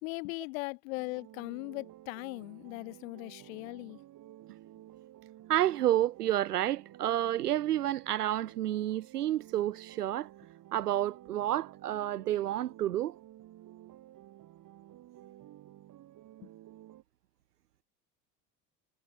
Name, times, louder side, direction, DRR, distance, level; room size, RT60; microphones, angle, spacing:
voice 1, 0.0-4.0 16.4-16.5, left 26 dB, 55° left, 2.8 m, -39 dB
sound 1, 1.0-17.0, right 13 dB, 40° right, 4.8 m, -53 dB
voice 2, 5.5-10.3 10.7-13.2, right 13 dB, 70° right, 0.9 m, -30 dB
figure-of-eight pair, 70°, 48 cm